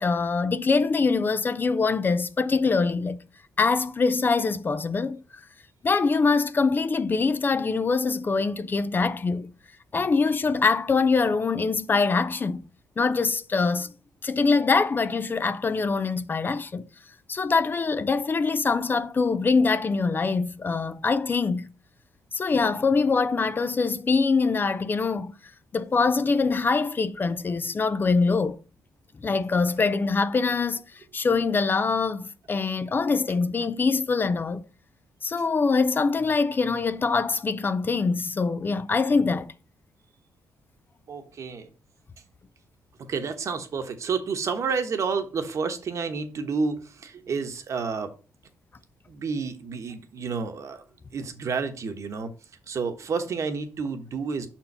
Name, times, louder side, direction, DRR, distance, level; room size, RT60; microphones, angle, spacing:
voice 1, 0.0-3.2 3.6-5.2 5.8-9.5 9.9-12.6 13.0-13.9 14.2-16.9 17.3-21.7 22.3-25.3 25.7-28.6 29.2-30.8 31.1-34.6 35.2-39.5, left 4 dB, 35° left, 0.5 m, -24 dB
voice 2, 41.1-41.7 43.0-48.1 49.1-50.8 51.1-52.3 52.7-54.5, right 5 dB, 55° right, 1.2 m, -30 dB
5.6 x 4.5 x 5.4 m
cardioid pair, 80°, 6 cm